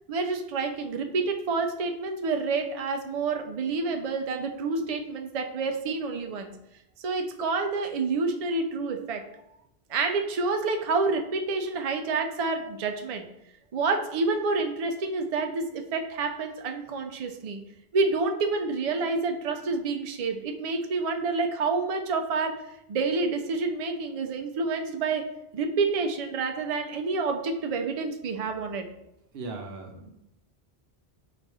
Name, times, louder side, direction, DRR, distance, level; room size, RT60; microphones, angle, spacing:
voice 1, 0.1-6.5 7.0-9.2 9.9-13.2 13.7-17.6 17.9-22.5 22.9-25.2 25.5-28.9, right 4 dB, 55° right, 5 dB, 0.4 m, -28 dB
voice 2, 29.3-30.1, right 3 dB, 80° right, 4 dB, 1.0 m, -38 dB
4.0 x 2.5 x 4.7 m, 0.83 s
omnidirectional pair, 1.1 m